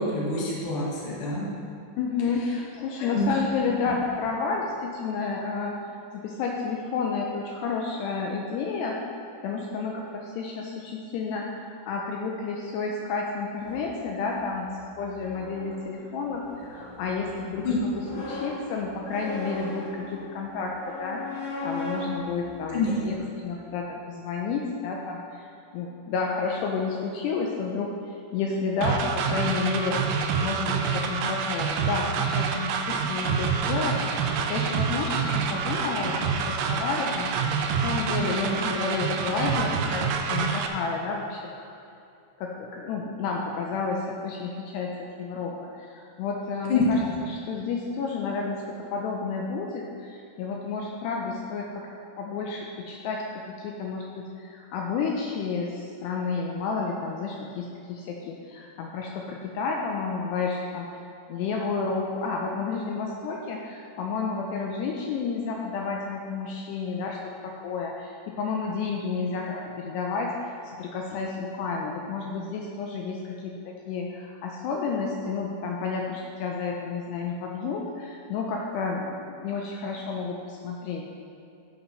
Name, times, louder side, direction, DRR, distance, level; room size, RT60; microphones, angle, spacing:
voice 1, 0.0-1.5 3.1-3.4 17.6-17.8 22.7-22.9 38.4-38.7 46.7-46.9 69.4-69.6, left 3 dB, 50° left, -5 dB, 1.7 m, -26 dB
voice 2, 2.0-5.8 6.1-9.0 9.4-30.0 30.4-41.7 42.4-44.9 45.2-51.9 52.2-60.9 61.3-70.3 70.8-81.0, left 4 dB, 90° left, 0 dB, 2.4 m, -31 dB
sound 1, 13.6-23.6, left 2 dB, 65° left, 4.3 m, -39 dB
sound 2, 28.8-40.7, right 6 dB, 90° right, 2.5 m, -27 dB
12.5 x 6.0 x 5.5 m, 2.6 s
omnidirectional pair, 5.6 m